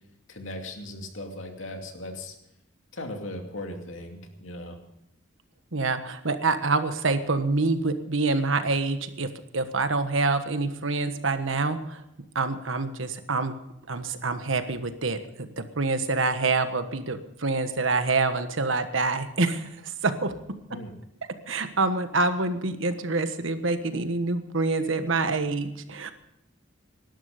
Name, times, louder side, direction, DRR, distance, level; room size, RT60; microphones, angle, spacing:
voice 1, 0.3-2.3 2.9-4.8 20.7-20.9, left 1 dB, 75° left, 4 dB, 2.5 m, -38 dB
voice 2, 5.7-9.3 9.5-12.0 12.3-13.5 13.9-20.3 21.5-26.1, right 3 dB, 75° right, 9 dB, 1.4 m, -26 dB
19.0 x 12.0 x 5.2 m, 0.86 s
head